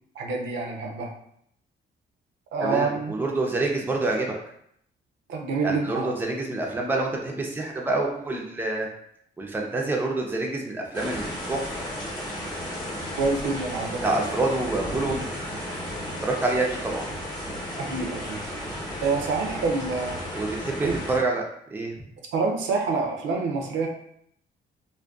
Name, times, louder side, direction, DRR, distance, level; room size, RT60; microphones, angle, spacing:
voice 1, 0.2-1.1 2.5-3.1 5.3-6.1 13.2-14.1 17.8-18.4 19.0-20.2 20.8-21.0 22.3-23.9, right 4 dB, 75° right, 2 dB, 0.5 m, -27 dB
voice 2, 2.6-4.3 5.6-8.9 9.4-11.8 14.0-15.2 16.2-17.1 20.3-21.4 21.7-21.9, right 2 dB, 10° right, 0 dB, 0.4 m, -27 dB
sound 1, 10.9-21.2, equal, 20° left, 0.8 m, -34 dB
2.5 x 2.2 x 2.3 m, 0.69 s
cardioid pair, 90°, 20 cm